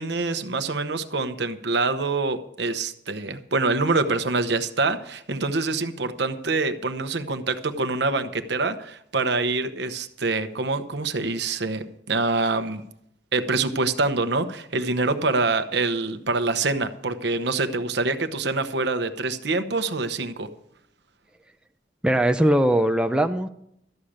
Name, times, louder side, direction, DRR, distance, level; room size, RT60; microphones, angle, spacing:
voice 1, 0.0-12.8 13.3-20.5, right 3 dB, 65° right, 10 dB, 0.9 m, -25 dB
voice 2, 22.0-23.5, right 1 dB, 5° right, 6 dB, 0.5 m, -20 dB
13.0 x 6.5 x 8.7 m, 0.74 s
head